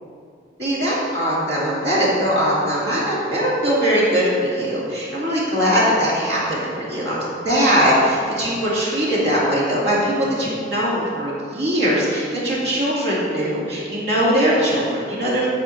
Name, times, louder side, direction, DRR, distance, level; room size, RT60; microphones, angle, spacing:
voice 1, 0.6-15.5, equal, 60° right, -7 dB, 2.4 m, -20 dB
10.0 x 4.8 x 7.1 m, 2.3 s
head